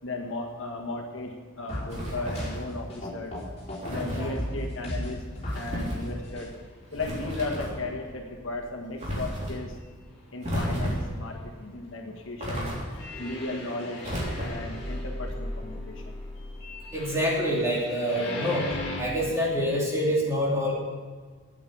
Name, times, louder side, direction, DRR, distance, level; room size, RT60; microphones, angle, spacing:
voice 1, 0.0-3.3 3.9-5.2 5.5-6.5 6.9-9.8 10.3-12.7 13.2-16.2, left 2 dB, 70° left, 1 dB, 1.5 m, -36 dB
sound 1, 1.7-4.0 4.4-5.7 6.0-6.5 7.0-7.1 7.8-7.9 8.4-8.5 12.9-19.0, left 1 dB, 30° left, 3.7 m, -36 dB
sound 2, 1.9-2.7 3.8-4.3 5.5-6.0 6.9-7.8 9.0-9.5 10.4-11.2 12.4-13.1 14.0-14.7, equal, 30° right, 3.4 m, -32 dB
voice 2, 16.9-18.7 19.0-20.7, equal, 15° right, -5 dB, 2.6 m, -26 dB
8.9 x 8.5 x 8.7 m, 1.5 s
head